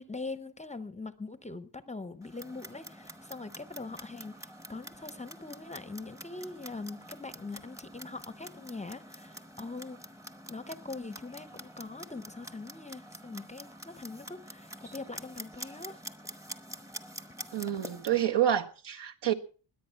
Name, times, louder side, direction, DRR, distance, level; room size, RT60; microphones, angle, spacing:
voice 1, 0.0-10.2 10.5-16.1, left 3 dB, 15° left, 0.7 m, -42 dB
Clock, 2.2-18.2, equal, 5° right, 1.0 m, -47 dB
voice 2, 17.5-19.3, right 10 dB, 70° right, 1.6 m, -28 dB
21.0 x 8.6 x 5.7 m
wide cardioid pair, 160°, 44 cm